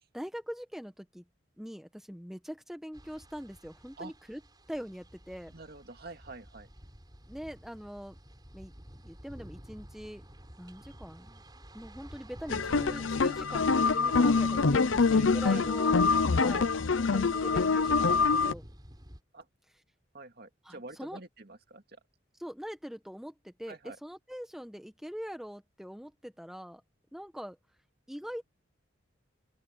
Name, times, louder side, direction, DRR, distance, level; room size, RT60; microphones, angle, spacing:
voice 1, 0.1-1.2 1.6-4.4 4.7-5.5 7.3-8.2 8.5-8.7 9.0-10.3 10.6-11.4 11.7-16.0 16.3-16.7 17.1-18.6 20.6-21.2 22.4-26.8 27.1-27.6 28.1-28.4, equal, ahead, 1.2 m, -42 dB
sound 1, 2.9-19.2, equal, 20° right, 5.5 m, -51 dB
voice 2, 5.5-6.7 14.2-14.3 15.5-16.5 19.3-19.5 20.1-21.8 23.7-24.0, right 3 dB, 55° right, 2.3 m, -46 dB
sound 2, 12.5-18.5, left 4 dB, 85° left, 0.7 m, -25 dB
open air
head